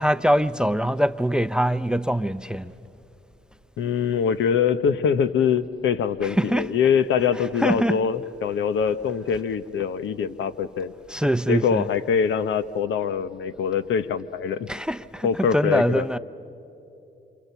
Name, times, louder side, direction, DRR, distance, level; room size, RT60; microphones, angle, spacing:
voice 1, 0.0-2.7 6.2-6.7 7.6-8.0 11.1-11.9 14.7-16.2, equal, 5° right, 0.5 m, -23 dB
voice 2, 3.8-10.9 11.5-14.7 15.2-16.1, left 7 dB, 75° left, 0.9 m, -23 dB
27.5 x 27.5 x 7.0 m
cardioid pair, 90°, 20 cm